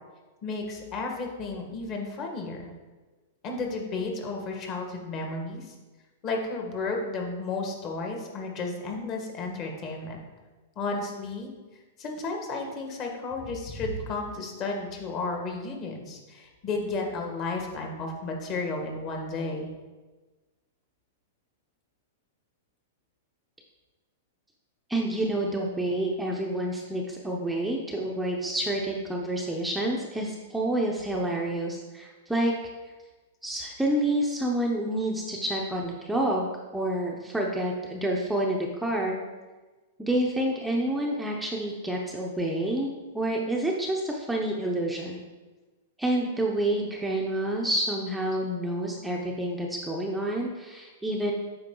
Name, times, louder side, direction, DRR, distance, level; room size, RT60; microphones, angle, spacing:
voice 1, 0.4-2.7 3.4-5.7 6.2-10.2 10.7-11.5 12.0-19.7, left 3 dB, 35° left, 1 dB, 1.5 m, -33 dB
voice 2, 24.9-32.5 33.4-36.5 36.7-39.2 40.0-42.9 43.1-45.2 46.0-51.3, right 1 dB, 5° right, -2 dB, 0.7 m, -28 dB
8.7 x 5.1 x 3.8 m, 1.3 s
hypercardioid pair, 145°, 0 cm